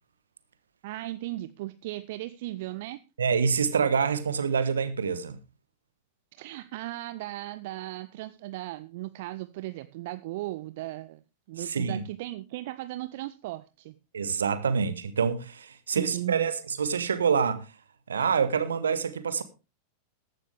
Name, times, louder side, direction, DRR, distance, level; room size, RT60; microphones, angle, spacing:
voice 1, 0.8-3.0 6.4-11.2 11.5-13.9 15.9-16.5, right 17 dB, 50° right, 0.6 m, -36 dB
voice 2, 3.2-5.4 11.6-12.0 14.1-17.7 18.1-19.4, right 6 dB, 70° right, 1.4 m, -26 dB
14.5 x 11.5 x 3.4 m
figure-of-eight pair, 90°, 0 cm